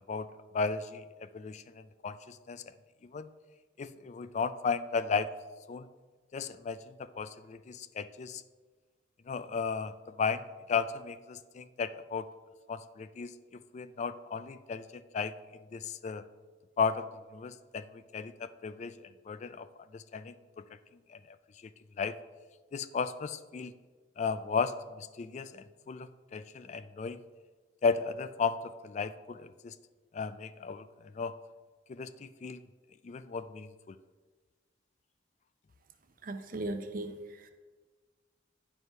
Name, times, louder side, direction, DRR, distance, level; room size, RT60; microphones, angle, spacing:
voice 1, 0.5-2.6 3.0-3.3 3.8-5.3 5.7-5.9 6.3-8.4 9.3-12.3 12.7-15.3 15.7-16.2 16.8-17.1 17.3-19.7 19.9-20.6 21.1-21.4 22.0-22.1 22.7-23.8 24.2-27.2 27.8-29.7 30.1-30.9 31.1-31.3 31.9-32.6 33.0-33.9, left 5 dB, 40° left, 13 dB, 0.3 m, -35 dB
voice 2, 36.2-37.1 37.4-37.5, right 2 dB, 50° right, 7 dB, 0.7 m, -37 dB
9.3 x 4.9 x 5.4 m, 1.4 s
head